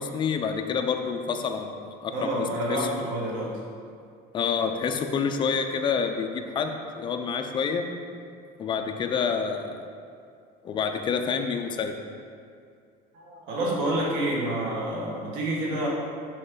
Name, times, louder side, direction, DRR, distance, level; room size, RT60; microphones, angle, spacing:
voice 1, 0.0-2.3 2.7-2.9 4.3-7.9 8.6-9.7 10.6-11.9, left 6 dB, 25° left, 5 dB, 0.4 m, -28 dB
voice 2, 2.1-3.6 13.1-15.9, right 1 dB, 75° right, -3 dB, 1.6 m, -28 dB
6.4 x 5.0 x 3.8 m, 2.3 s
cardioid pair, 155°, 20 cm